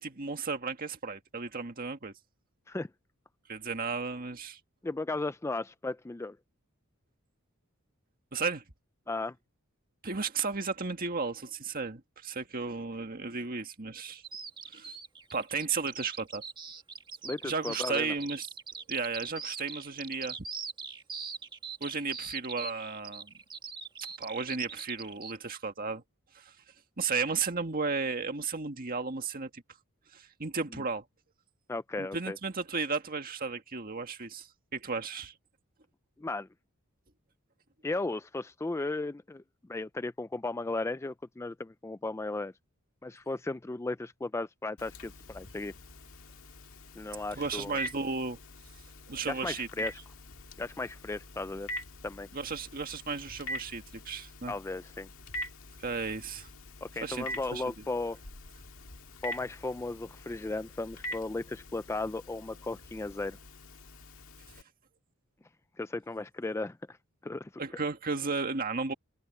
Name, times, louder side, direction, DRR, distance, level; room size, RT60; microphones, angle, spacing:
voice 1, 0.0-2.1 3.5-4.6 8.3-8.6 10.0-14.2 14.7-15.0 15.3-16.4 17.4-18.5 18.9-20.4 21.8-23.3 24.2-26.0 26.3-26.5 27.0-29.6 30.1-31.0 32.0-35.3 47.3-48.4 49.1-49.7 52.3-54.6 55.8-56.5 57.0-57.3 57.5-57.6 67.6-68.9, right 4 dB, 45° right, 1.8 m, -34 dB
voice 2, 4.8-6.4 9.1-9.3 17.2-18.1 31.7-32.4 36.2-36.5 37.8-39.4 39.7-42.5 43.0-45.7 47.0-47.8 49.3-49.9 50.6-51.7 52.0-52.3 54.5-55.1 56.8-58.2 59.2-63.4 65.8-67.0 67.2-67.5, left 2 dB, 15° left, 0.3 m, -35 dB
Bird vocalization bird call bird song, 14.2-25.4, right 5 dB, 20° right, 1.5 m, -42 dB
Telephone, 44.8-64.6, equal, 75° left, 1.9 m, -44 dB
head